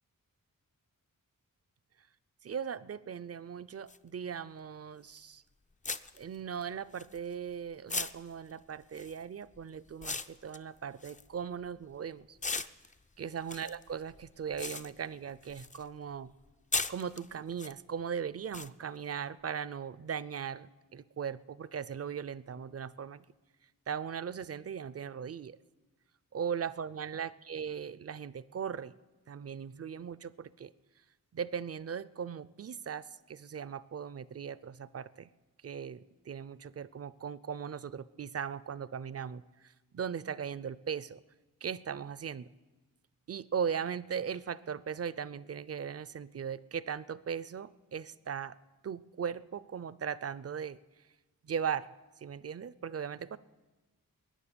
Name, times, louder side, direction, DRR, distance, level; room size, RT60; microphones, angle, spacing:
voice 1, 2.4-5.4 6.1-12.4 13.2-16.3 16.9-23.3 23.9-25.6 26.3-28.9 29.3-30.7 31.3-35.3 35.6-41.2 41.6-42.5 43.3-48.6 48.8-50.8 51.4-51.9 52.2-53.4, right 7 dB, 45° right, 18 dB, 0.5 m, -38 dB
sound 1, 3.9-4.0 5.2-5.3 5.8-7.5 7.9-12.0 12.4-15.9 16.1-17.7 18.5-18.7, left 3 dB, 20° left, 0.5 m, -39 dB
21.0 x 9.8 x 6.9 m, 1.2 s
wide cardioid pair, 95°, 35 cm